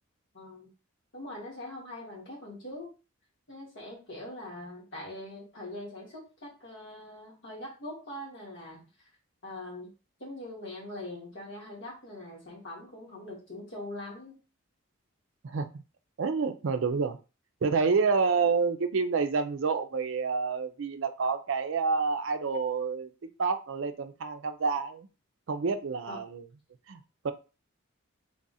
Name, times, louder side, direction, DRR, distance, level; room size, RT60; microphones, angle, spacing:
voice 1, 0.3-0.7 1.1-2.9 3.5-8.8 9.4-9.9 10.2-14.4 26.1-26.2, left 1 dB, 55° left, -4 dB, 1.7 m, -42 dB
voice 2, 15.4-15.8 16.2-17.2 17.6-23.1 23.4-25.1 25.5-26.5 26.9-27.3, right 5 dB, 60° right, 8 dB, 0.4 m, -28 dB
3.5 x 2.4 x 4.0 m, 0.32 s
head